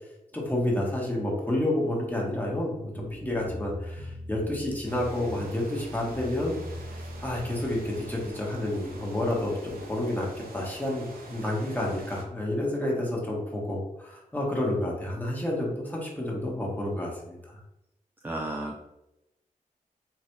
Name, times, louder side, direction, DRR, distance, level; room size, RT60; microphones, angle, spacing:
voice 1, 0.3-6.6 6.9-10.3 10.5-17.5, left 1 dB, 10° left, -3 dB, 1.4 m, -30 dB
sound 1, 3.0-8.3, equal, 30° right, 0.9 m, -40 dB
sound 2, 4.8-12.2, right 2 dB, 80° right, 0.8 m, -46 dB
voice 2, 18.2-18.8, right 1 dB, 15° right, 0 dB, 0.5 m, -33 dB
3.9 x 2.5 x 4.5 m, 0.90 s
wide cardioid pair, 90°, 15 cm